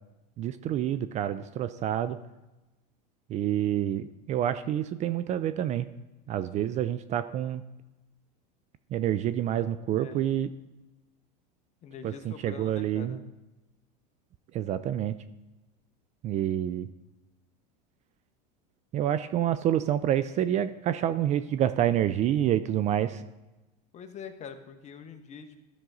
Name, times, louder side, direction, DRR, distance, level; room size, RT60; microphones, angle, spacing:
voice 1, 0.4-2.2 3.3-5.9 6.3-7.6 8.9-10.5 12.0-13.2 14.5-15.2 16.2-16.9 18.9-23.2, right 11 dB, 35° right, 13 dB, 0.4 m, -28 dB
voice 2, 9.8-10.3 11.8-13.2 23.9-25.6, left 7 dB, 35° left, 7 dB, 1.0 m, -44 dB
13.0 x 6.0 x 3.9 m, 1.0 s
supercardioid pair, 115°, 21 cm